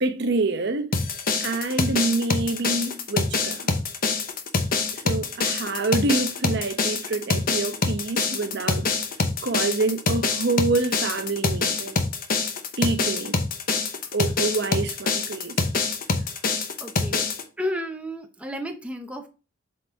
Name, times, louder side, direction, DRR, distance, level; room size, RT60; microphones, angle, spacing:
voice 1, 0.0-0.9 1.4-3.7 4.9-8.9 9.4-12.0 12.8-13.4 14.1-15.6, right 3 dB, 60° right, 0.9 m, -26 dB
sound 1, 0.9-17.4, left 4 dB, 50° left, 0.9 m, -25 dB
voice 2, 16.8-17.3 17.6-19.3, equal, 5° right, 0.7 m, -32 dB
7.6 x 4.2 x 3.5 m
head